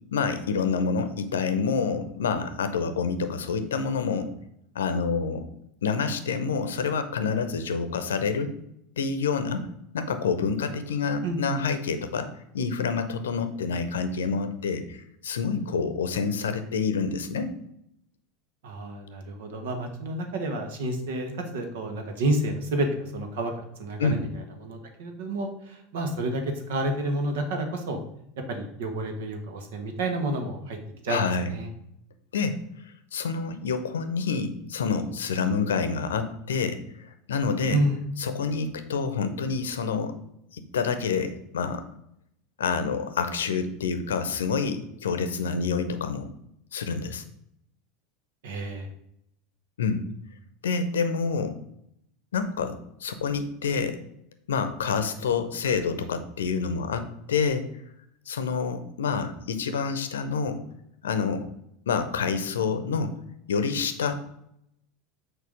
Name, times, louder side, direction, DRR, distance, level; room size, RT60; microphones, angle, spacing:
voice 1, 0.1-4.3 4.7-5.5 5.8-8.6 9.0-9.7 9.9-12.3 12.5-17.5 24.0-24.2 31.1-31.5 32.3-32.6 33.1-37.8 38.2-40.1 40.5-41.8 42.6-46.3 46.7-47.2 49.8-50.1 50.6-51.6 52.3-54.0 54.5-57.7 58.3-60.6 61.0-61.5 61.9-63.1 63.5-64.2, left 5 dB, 70° left, 10 dB, 0.7 m, -27 dB
voice 2, 11.2-11.6 18.6-23.5 23.8-24.3 24.6-28.0 28.5-30.8 31.0-31.2 31.5-31.7 37.7-38.0 48.4-48.9, right 1 dB, 65° right, 5 dB, 1.4 m, -29 dB
6.9 x 4.7 x 5.0 m, 0.76 s
figure-of-eight pair, 80°, 0 cm